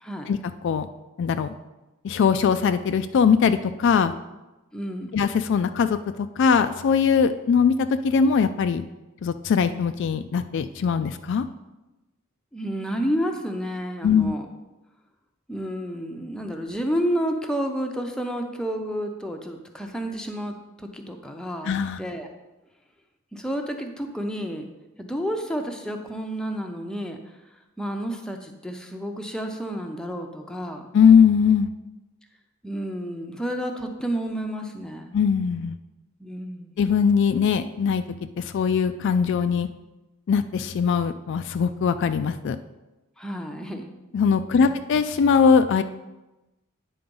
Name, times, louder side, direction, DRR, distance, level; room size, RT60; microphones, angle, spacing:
voice 1, 0.0-0.3 4.7-5.2 12.5-14.5 15.5-22.3 23.3-24.7 25.0-27.2 27.8-30.9 32.6-35.2 36.2-36.8 43.2-43.9 44.5-45.0, equal, 5° left, 3 dB, 0.6 m, -30 dB
voice 2, 1.2-1.5 2.0-4.1 5.1-8.8 9.2-11.4 14.0-14.3 21.7-22.0 30.9-31.7 35.1-35.8 36.8-38.0 38.4-39.7 40.3-42.6 44.1-45.8, left 6 dB, 55° left, 10 dB, 0.3 m, -21 dB
9.3 x 3.9 x 5.3 m, 1.0 s
head